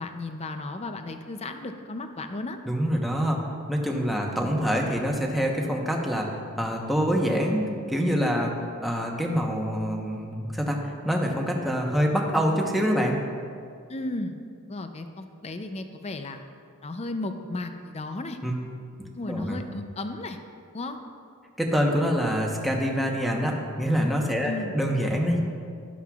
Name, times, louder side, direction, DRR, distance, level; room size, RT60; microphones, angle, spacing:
voice 1, 0.0-2.6 13.9-14.4 14.7-16.4 16.8-18.4 19.2-20.4 20.7-21.0 24.4-24.7, left 2 dB, 30° left, 7 dB, 0.5 m, -34 dB
voice 2, 2.7-3.4 3.7-8.5 8.8-13.2 18.4-18.5 19.3-19.6 21.6-25.4, equal, ahead, -1 dB, 0.9 m, -25 dB
12.0 x 11.5 x 2.4 m, 2.3 s
head